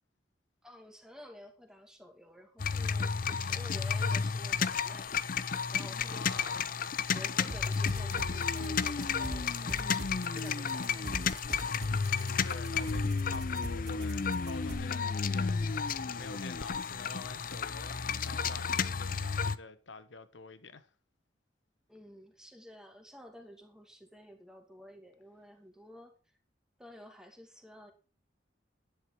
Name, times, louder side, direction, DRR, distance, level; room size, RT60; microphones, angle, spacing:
voice 1, 0.6-6.8 7.1-11.2 21.9-26.1 26.8-27.9, equal, 5° right, 2.3 m, -52 dB
sound 1, 2.6-19.6, left 5 dB, 50° left, 0.6 m, -32 dB
voice 2, 6.1-6.7 11.9-20.9, left 3 dB, 80° left, 1.2 m, -48 dB
sound 2, 7.5-14.8, right 1 dB, 40° right, 2.6 m, -42 dB
11.0 x 10.5 x 4.8 m
head